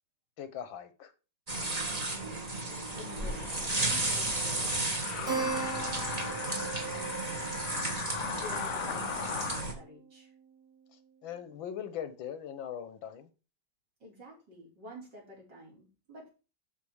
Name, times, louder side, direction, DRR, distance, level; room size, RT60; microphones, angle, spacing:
voice 1, 0.4-1.1 11.2-13.3, left 9 dB, 85° left, 1.8 m, -40 dB
sound 1, 1.5-9.7, right 2 dB, 20° right, 1.4 m, -34 dB
voice 2, 3.0-7.9 8.2-10.3 14.0-16.3, equal, 65° right, 4.9 m, -50 dB
sound 2, 3.2-9.7, left 9 dB, 60° left, 0.9 m, -39 dB
Keyboard (musical), 5.3-10.2, right 5 dB, 45° right, 2.1 m, -39 dB
12.5 x 4.4 x 5.0 m
omnidirectional pair, 2.1 m